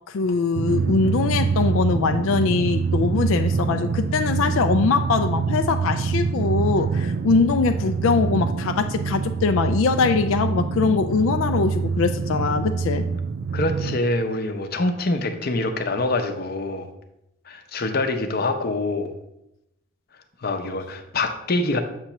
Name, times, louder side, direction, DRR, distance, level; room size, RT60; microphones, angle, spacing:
voice 1, 0.1-13.0, left 4 dB, 85° left, 8 dB, 0.4 m, -22 dB
Drum, 0.5-14.0, right 5 dB, 50° right, 0.3 m, -25 dB
voice 2, 13.5-16.9 17.5-19.1 20.4-21.8, left 2 dB, 50° left, 6 dB, 0.7 m, -25 dB
7.5 x 3.0 x 5.7 m, 0.85 s
head